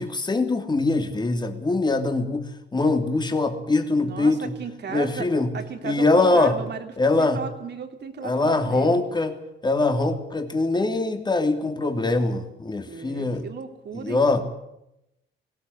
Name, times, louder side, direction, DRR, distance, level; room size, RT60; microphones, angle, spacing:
voice 1, 0.0-4.5 4.9-5.5 5.8-6.6 7.0-7.4 8.2-9.4 9.6-13.4 13.9-14.4, left 2 dB, 20° left, 6 dB, 3.0 m, -23 dB
voice 2, 4.0-5.3 5.5-6.9 7.2-9.0 12.8-14.3, right 6 dB, 60° right, 6 dB, 3.2 m, -35 dB
19.0 x 17.0 x 9.9 m, 0.86 s
cardioid pair, 90°, 20 cm